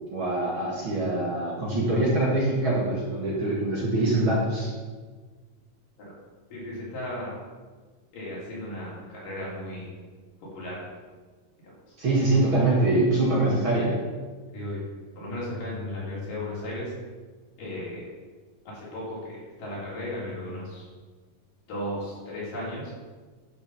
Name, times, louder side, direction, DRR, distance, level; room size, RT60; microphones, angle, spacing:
voice 1, 0.1-4.7 12.0-13.9, right 2 dB, 45° right, -4 dB, 2.1 m, -24 dB
voice 2, 6.5-7.3 8.1-9.9 10.4-10.8 11.6-11.7 14.5-14.8 15.2-16.9 17.6-18.1 18.7-20.9 21.7-22.9, left 1 dB, 75° left, -6 dB, 5.3 m, -35 dB
11.5 x 6.0 x 5.7 m, 1.4 s
omnidirectional pair, 3.8 m